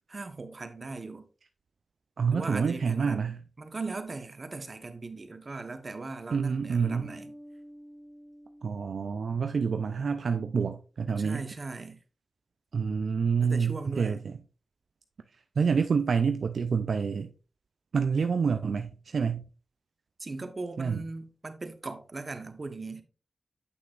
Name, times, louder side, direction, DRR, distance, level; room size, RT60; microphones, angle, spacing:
voice 1, 0.1-1.2 2.3-7.3 11.1-12.0 13.4-14.2 20.2-23.0, right 3 dB, 45° right, 1.0 m, -39 dB
voice 2, 2.2-3.4 6.3-7.1 8.6-11.5 12.7-14.4 15.6-17.3 17.9-19.4 20.8-21.0, right 5 dB, 75° right, 0.4 m, -27 dB
Bass guitar, 6.8-10.3, equal, 70° left, 1.7 m, -50 dB
8.0 x 5.9 x 2.4 m
cardioid pair, 45°, 0 cm